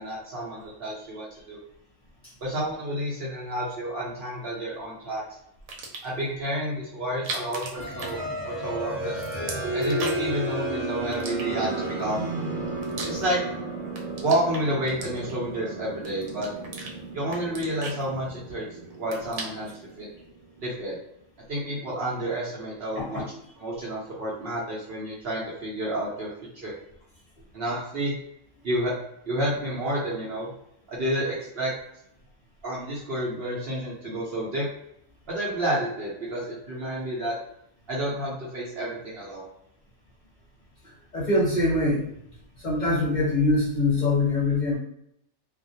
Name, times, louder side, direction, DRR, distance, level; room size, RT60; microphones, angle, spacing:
voice 1, 0.0-1.6 2.4-5.2 6.0-9.1 9.7-12.2 13.0-13.4 14.2-16.5 17.1-18.7 19.0-19.7 20.0-20.1 20.6-21.0 21.5-23.2 23.6-26.3 26.5-26.7 27.5-28.1 28.6-28.9 29.3-30.5 30.9-31.7 32.6-34.7 35.3-37.4 37.9-39.5, right 1 dB, 55° right, -5 dB, 0.7 m, -30 dB
sound 1, 5.6-6.2 7.1-8.7 9.0-10.4 11.1-11.9 12.5-13.6 13.9-15.5 16.0-16.9 17.3-18.6 18.9-19.8, right 3 dB, 85° right, 1.0 m, -38 dB
sound 2, 7.8-20.3, right 1 dB, 20° right, 0.9 m, -33 dB
voice 2, 41.1-42.1 42.6-44.8, left 2 dB, 40° left, -7 dB, 0.7 m, -23 dB
2.4 x 2.1 x 2.6 m, 0.77 s
omnidirectional pair, 1.4 m